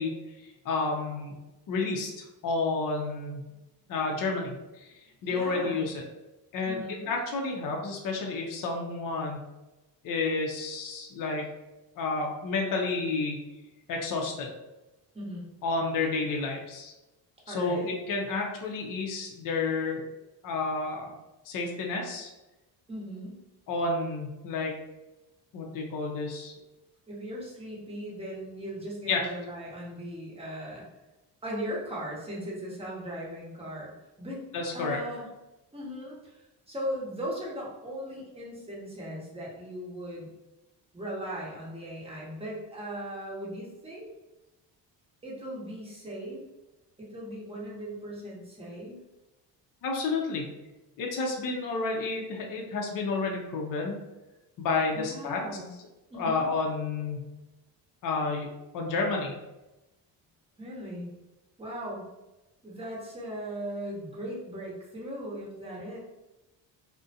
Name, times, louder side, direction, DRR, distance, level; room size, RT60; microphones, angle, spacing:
voice 1, 0.0-1.4 1.7-3.4 3.9-4.9 5.2-6.0 6.5-9.4 10.0-11.5 12.0-13.4 13.9-14.5 15.6-16.9 17.5-20.0 20.4-21.2 21.4-22.3 23.7-24.7 25.5-26.5 29.1-29.3 34.5-35.0 49.8-50.4 51.0-54.0 54.6-55.4 56.1-57.3 58.0-58.5 58.7-59.3, left 3 dB, 50° left, 0 dB, 0.5 m, -30 dB
voice 2, 5.2-5.8 6.7-7.1 15.1-15.5 17.5-17.9 22.9-23.4 27.1-30.8 31.4-33.9 34.2-34.4 34.7-35.3 35.7-40.3 40.9-44.1 45.2-46.4 47.0-49.0 54.9-55.7 56.1-56.5 60.6-61.1 61.6-62.0 62.6-66.0, equal, 15° right, -5 dB, 0.8 m, -38 dB
2.4 x 2.1 x 2.7 m, 1.0 s
cardioid pair, 115°, 44 cm